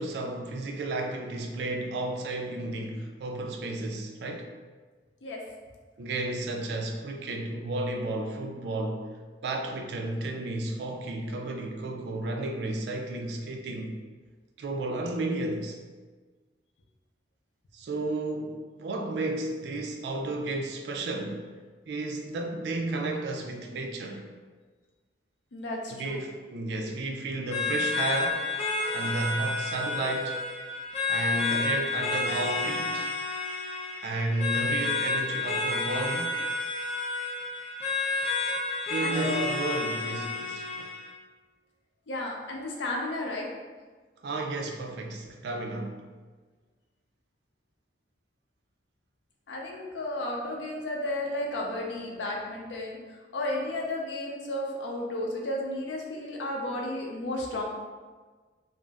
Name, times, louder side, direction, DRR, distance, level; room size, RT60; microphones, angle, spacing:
voice 1, 0.0-4.5 6.0-9.1 9.4-14.0 14.6-15.8 17.7-21.4 21.9-24.3 25.9-28.5 28.9-30.4 31.1-33.1 34.0-36.4 38.9-40.9 44.2-46.0, right 2 dB, 65° right, 2 dB, 0.3 m, -32 dB
voice 2, 25.5-26.2 39.0-39.5 42.1-43.5 49.5-57.6, left 1 dB, 85° left, -1 dB, 0.5 m, -33 dB
sound 1, 27.5-41.1, left 3 dB, 35° left, 0.4 m, -30 dB
2.5 x 2.0 x 3.3 m, 1.4 s
head